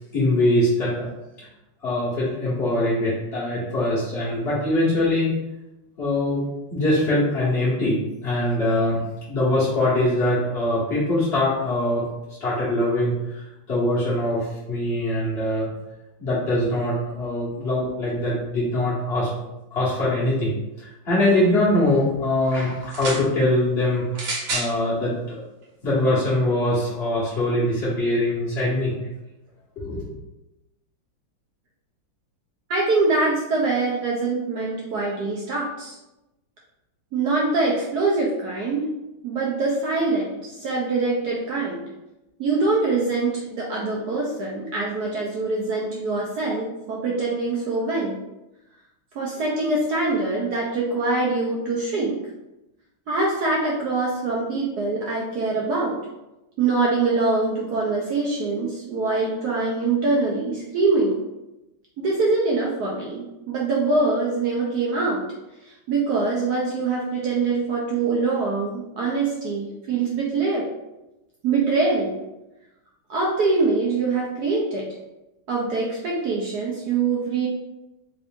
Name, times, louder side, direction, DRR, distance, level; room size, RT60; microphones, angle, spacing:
voice 1, 0.1-1.1 1.8-5.3 6.0-6.4 6.7-9.0 9.3-12.0 12.4-13.4 13.7-15.7 16.2-19.3 19.7-24.1 24.5-25.4 25.8-28.9 29.8-30.0, left 1 dB, 50° left, -10 dB, 0.8 m, -22 dB
sound 1, 22.8-23.3 24.1-24.7 25.6-25.7, right 2 dB, 55° right, 1.4 m, -28 dB
voice 2, 32.7-35.9 37.1-38.9 39.2-41.9 42.4-48.2 49.1-52.2 53.1-56.0 56.6-61.1 62.0-65.2 65.6-70.7 71.4-72.1 73.1-74.9 75.5-77.5, right 3 dB, 75° right, -3 dB, 0.9 m, -24 dB
3.7 x 2.5 x 3.5 m, 0.95 s
omnidirectional pair, 2.4 m